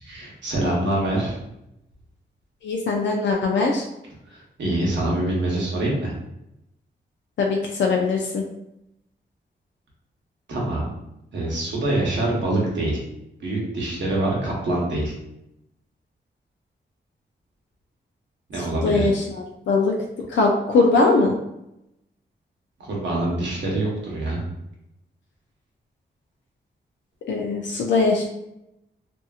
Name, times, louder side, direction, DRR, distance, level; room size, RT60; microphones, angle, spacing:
voice 1, 0.0-1.4 4.3-6.1 10.5-10.9 11.3-13.0 13.4-15.1 18.5-19.1 22.8-24.4, right 1 dB, 85° right, -3 dB, 1.0 m, -25 dB
voice 2, 2.6-3.8 7.4-8.4 18.8-19.2 19.7-19.9 20.3-21.3 27.3-28.3, left 3 dB, 80° left, 1 dB, 0.4 m, -20 dB
2.7 x 2.5 x 2.3 m, 0.85 s
wide cardioid pair, 105°, 19 cm